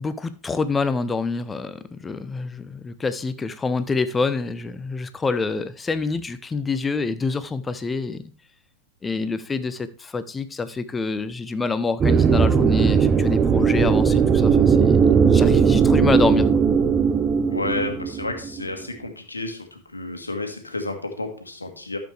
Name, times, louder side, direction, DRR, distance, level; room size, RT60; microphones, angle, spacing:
voice 1, 0.0-8.2 9.0-16.5, left 4 dB, 15° left, 13 dB, 0.7 m, -26 dB
sound 1, 12.0-18.6, right 6 dB, 20° right, 0.6 m, -18 dB
voice 2, 17.5-22.0, left 2 dB, 80° left, 5 dB, 1.6 m, -31 dB
12.5 x 7.0 x 3.3 m, 0.41 s
figure-of-eight pair, 90°, 0 cm